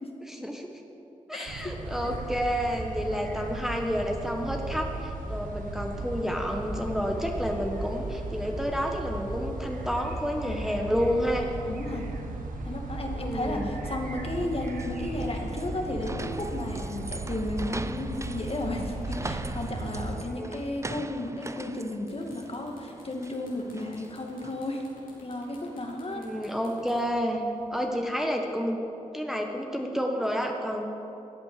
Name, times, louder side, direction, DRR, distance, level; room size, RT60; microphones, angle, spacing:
voice 1, 0.2-0.7 1.3-11.5 13.2-13.7 20.2-20.5 26.1-27.4 27.7-28.8 29.1-30.9, equal, 5° right, 2 dB, 1.4 m, -30 dB
sound 1, 1.5-20.2, right 2 dB, 80° right, 1.3 m, -36 dB
voice 2, 11.7-12.1 12.6-24.9 25.2-26.2, left 1 dB, 45° left, 1 dB, 2.0 m, -33 dB
sound 2, 14.3-24.7, right 2 dB, 20° right, 0.6 m, -42 dB
sound 3, 21.6-21.7 22.0-28.1, left 2 dB, 85° left, 3.3 m, -53 dB
14.0 x 8.6 x 6.7 m, 2.9 s
cardioid pair, 50°, 14 cm